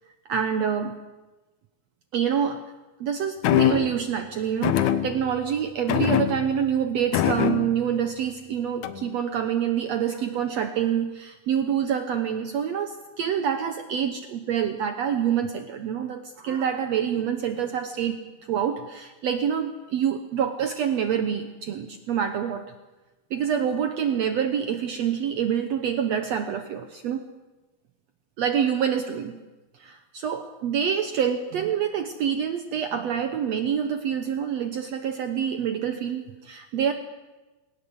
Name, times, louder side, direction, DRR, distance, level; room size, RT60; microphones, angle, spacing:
voice 1, 0.2-1.0 2.1-2.6 3.0-22.6 23.3-27.2 28.4-29.4 29.7-36.9, right 8 dB, 80° right, 8 dB, 1.5 m, -26 dB
sound 1, 3.4-4.0 4.6-5.5 5.9-6.7 7.1-7.9 8.8-9.1, left 11 dB, 75° left, 1.8 m, -24 dB
20.0 x 18.5 x 7.9 m, 1.2 s
omnidirectional pair, 4.4 m